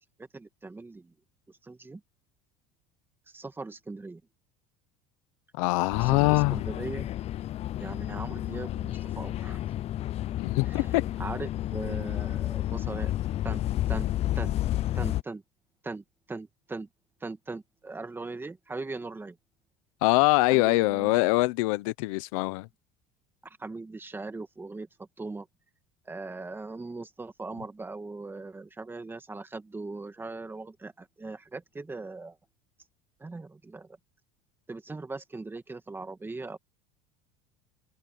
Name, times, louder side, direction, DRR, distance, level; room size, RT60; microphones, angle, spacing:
voice 1, 0.2-1.1 1.6-2.0 3.3-4.2 6.0-7.1 7.8-9.6 10.7-13.1 13.4-14.1 14.4-14.5 14.9-15.4 15.8-16.9 17.2-19.4 20.5-21.3 23.4-25.5 26.1-32.4 33.2-34.0 34.7-36.6, right 3 dB, 10° right, 2.0 m, -40 dB
voice 2, 5.5-6.6 10.4-11.0 20.0-22.7, left 23 dB, 85° left, 0.9 m, -24 dB
sound 1, 5.9-15.2, left 13 dB, 40° left, 0.5 m, -31 dB
cardioid pair, 130°, 17 cm